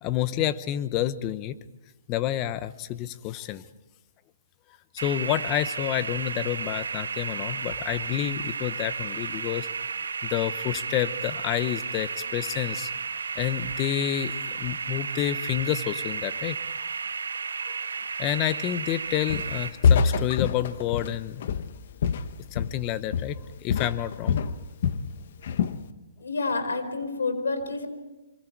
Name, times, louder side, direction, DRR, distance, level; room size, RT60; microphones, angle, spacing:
voice 1, 0.0-1.6 2.1-3.6 4.9-9.7 10.2-12.9 13.4-16.6 17.7-17.8 18.2-21.4 22.5-24.4, left 12 dB, 25° left, 14 dB, 0.9 m, -29 dB
sound 1, 5.0-19.7, right 5 dB, 90° right, 3.4 m, -33 dB
Walk footsteps, 19.3-19.6 19.8-22.9 23.1-23.4 23.7-25.1 25.4-25.8, left 6 dB, 55° left, 1.1 m, -25 dB
voice 2, 26.2-27.9, left 3 dB, 90° left, 8 dB, 4.3 m, -28 dB
27.0 x 24.0 x 4.7 m, 1.0 s
hypercardioid pair, 155°, 0 cm